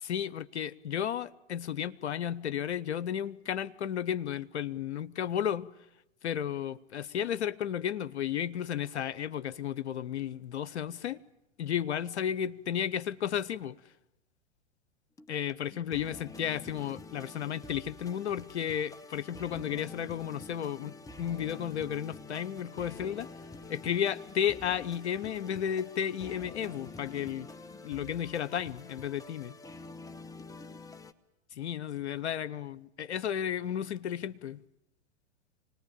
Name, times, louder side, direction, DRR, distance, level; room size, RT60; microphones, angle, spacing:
voice 1, 0.0-5.7 6.2-11.2 11.6-13.8 15.3-23.3 23.7-27.5 27.8-29.6 31.5-34.6, left 9 dB, 80° left, 0.9 m, -33 dB
sound 1, 15.2-31.1, left 3 dB, 10° left, 1.0 m, -47 dB
sound 2, 21.2-27.7, left 2 dB, 35° left, 7.8 m, -62 dB
25.5 x 19.5 x 8.9 m
hypercardioid pair, 105°, 33 cm